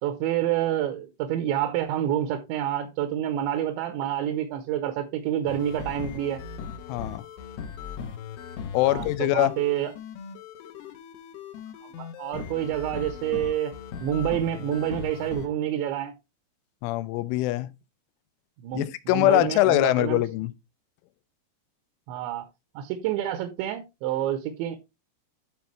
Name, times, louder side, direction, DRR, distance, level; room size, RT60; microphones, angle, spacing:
voice 1, 0.0-6.4 8.9-9.9 11.8-13.7 14.0-16.1 18.6-20.2 22.1-22.5 22.8-24.8, right 11 dB, 80° right, 3.0 m, -28 dB
sound 1, 5.5-15.5, left 6 dB, 70° left, 2.7 m, -39 dB
voice 2, 6.9-7.2 8.7-9.5 16.8-17.7 18.7-20.5, left 16 dB, 90° left, 3.1 m, -23 dB
12.0 x 4.4 x 3.2 m
omnidirectional pair, 5.5 m